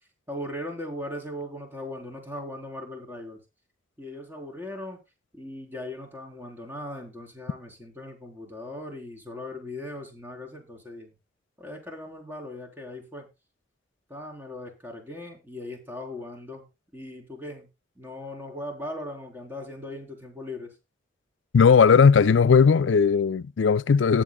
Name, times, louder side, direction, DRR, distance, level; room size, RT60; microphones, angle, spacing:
voice 1, 0.3-3.4 4.0-5.0 5.3-11.1 11.6-13.3 14.1-16.6 16.9-17.7 18.0-20.7, left 1 dB, 10° right, 4.0 m, -38 dB
voice 2, 21.5-24.2, left 6 dB, 85° left, 0.5 m, -17 dB
18.5 x 7.6 x 2.3 m
head